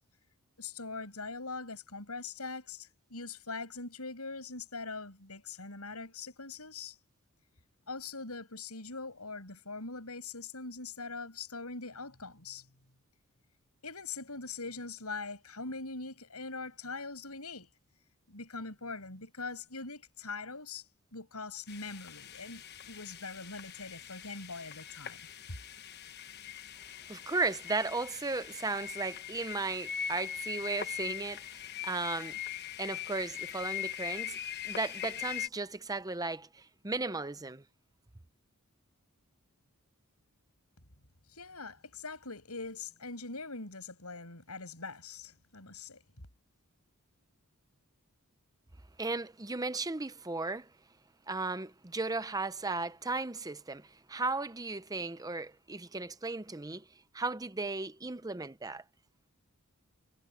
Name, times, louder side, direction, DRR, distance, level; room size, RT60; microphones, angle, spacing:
voice 1, 0.6-7.0 7.9-12.7 13.8-17.7 18.3-20.9 21.1-25.2 25.5-25.6 41.3-46.0, left 3 dB, 85° left, 7.1 m, -42 dB
sound 1, 21.7-35.5, left 10 dB, 50° left, 1.1 m, -41 dB
voice 2, 27.1-32.4 32.8-34.4 34.6-37.6 49.0-50.7 51.3-56.8 57.1-58.8, right 3 dB, 15° right, 0.7 m, -35 dB
head